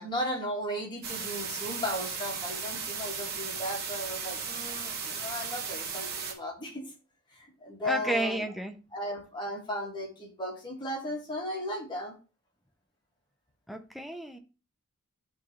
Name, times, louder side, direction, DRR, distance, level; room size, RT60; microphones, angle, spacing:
voice 1, 0.0-6.9 7.6-8.4 8.9-12.1, equal, 20° left, -1 dB, 2.4 m, -36 dB
sound 1, 1.0-6.3, right 6 dB, 50° right, 1.7 m, -36 dB
voice 2, 7.8-8.8 13.7-14.4, right 1 dB, ahead, 4 dB, 0.8 m, -31 dB
11.5 x 4.0 x 3.3 m, 0.32 s
head